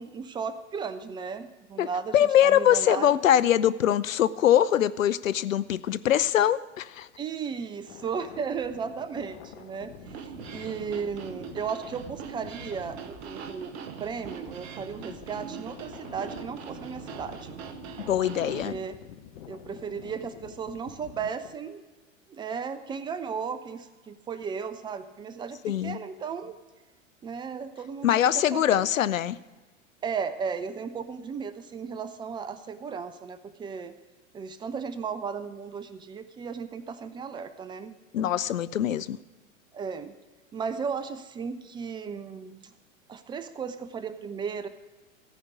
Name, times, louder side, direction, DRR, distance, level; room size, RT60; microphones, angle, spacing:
voice 1, 0.0-3.2 7.2-9.9 10.2-13.7 14.0-17.6 18.2-19.0 19.5-21.8 22.3-26.6 27.2-28.9 30.0-33.9 34.3-38.0 39.7-40.1 40.5-42.7 43.1-44.7, right 6 dB, 15° right, 12 dB, 0.3 m, -35 dB
voice 2, 2.1-7.1 18.0-18.7 25.6-26.0 28.0-29.4 38.1-39.2, left 11 dB, 80° left, 17 dB, 0.6 m, -23 dB
sound 1, 7.9-21.7, left 9 dB, 55° left, 1.1 m, -48 dB
sound 2, 10.0-18.7, right 7 dB, 55° right, 1.1 m, -41 dB
14.5 x 5.1 x 8.1 m, 1.2 s
figure-of-eight pair, 90°, 39 cm